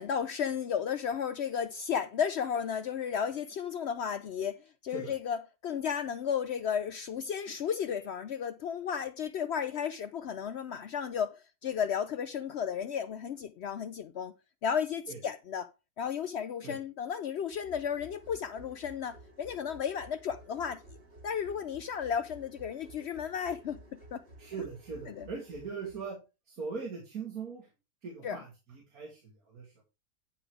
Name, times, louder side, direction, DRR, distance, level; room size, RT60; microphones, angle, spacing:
voice 1, 0.0-11.3 11.6-14.3 14.6-15.7 16.0-20.8 21.2-24.2 25.1-25.3 28.2-28.4, left 7 dB, 65° left, 0.7 m, -33 dB
sound 1, 17.5-26.0, right 1 dB, 40° right, 2.0 m, -54 dB
voice 2, 24.4-26.2 26.5-27.7 28.0-29.8, right 5 dB, 75° right, 2.6 m, -40 dB
9.7 x 4.9 x 4.8 m
omnidirectional pair, 1.5 m